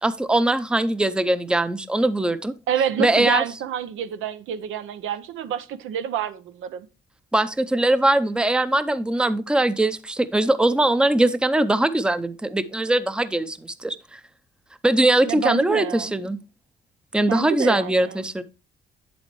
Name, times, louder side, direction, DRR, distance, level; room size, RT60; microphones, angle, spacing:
voice 1, 0.0-2.5 3.0-3.4 7.3-14.2 14.8-16.4 17.1-18.4, right 1 dB, 5° right, 0.5 m, -21 dB
voice 2, 2.7-6.9 15.3-16.1 17.3-18.2, right 8 dB, 85° right, 0.7 m, -28 dB
7.9 x 7.1 x 3.0 m
cardioid pair, 90°, 20 cm